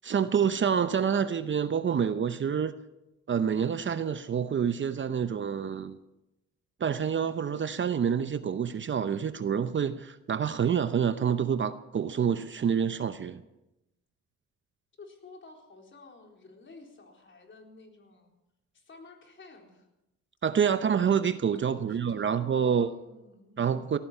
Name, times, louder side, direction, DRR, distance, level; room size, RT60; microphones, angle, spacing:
voice 1, 0.0-2.7 3.3-6.0 6.8-13.4 20.4-22.9 23.6-24.0, right 7 dB, 40° right, 0.8 m, -27 dB
voice 2, 15.0-18.3 18.7-19.9 21.6-22.2 22.5-23.6, left 3 dB, 40° left, 4.0 m, -51 dB
17.5 x 14.5 x 5.6 m
cardioid pair, 90°, 30 cm